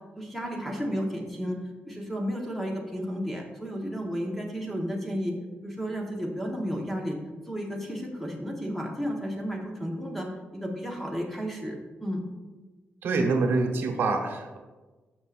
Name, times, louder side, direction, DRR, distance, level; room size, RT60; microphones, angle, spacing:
voice 1, 0.2-1.6 1.8-5.3 5.6-7.2 7.5-12.2, equal, 5° left, 0 dB, 1.2 m, -32 dB
voice 2, 13.0-14.6, right 3 dB, 65° right, 3 dB, 1.1 m, -25 dB
12.5 x 6.3 x 2.5 m, 1.2 s
wide cardioid pair, 170°, 4 cm